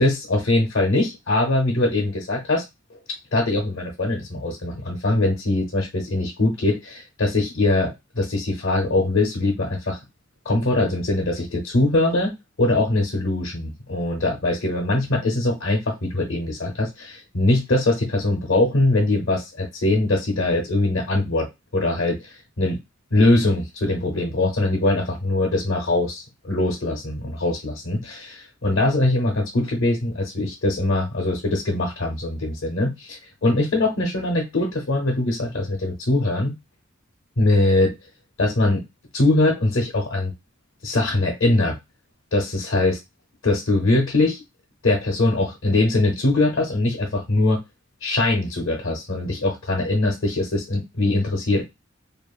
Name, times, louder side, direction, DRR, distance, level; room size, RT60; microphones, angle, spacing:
voice 1, 0.0-2.6 3.3-10.0 10.4-21.5 21.7-22.8 23.1-36.5 37.4-37.9 38.4-38.8 39.1-40.3 40.8-41.8 42.3-43.0 43.4-44.4 44.8-47.6 48.0-51.6, left 2 dB, 65° left, 0 dB, 0.7 m, -22 dB
2.8 x 2.3 x 2.3 m, 0.21 s
head